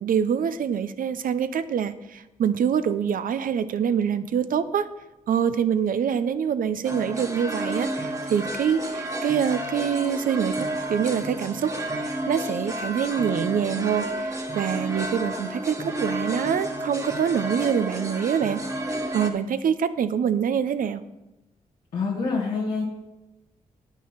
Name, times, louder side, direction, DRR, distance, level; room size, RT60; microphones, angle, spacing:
voice 1, 0.0-4.9 5.3-18.6 19.1-21.0, right 8 dB, 70° right, 13 dB, 0.6 m, -25 dB
sound 1, 6.8-19.3, right 1 dB, 20° right, 1.4 m, -31 dB
voice 2, 21.9-22.8, left 4 dB, 75° left, -5 dB, 1.9 m, -26 dB
9.7 x 6.3 x 5.7 m, 0.99 s
cardioid pair, 55°, 15 cm